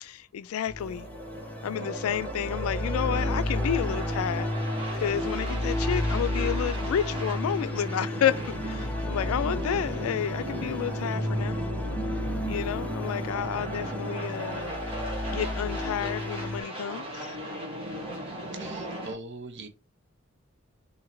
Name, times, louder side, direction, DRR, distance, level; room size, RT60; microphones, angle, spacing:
voice 1, 0.0-1.1 1.6-4.5 5.0-11.6 12.5-14.8 15.3-17.3, left 9 dB, 85° left, 0.3 m, -30 dB
sound 1, 0.7-16.6, left 1 dB, 5° left, 0.5 m, -32 dB
sound 2, 0.8-19.1, right 1 dB, 25° right, 1.1 m, -37 dB
voice 2, 18.5-19.7, right 3 dB, 60° right, 0.7 m, -41 dB
3.8 x 2.8 x 3.0 m
head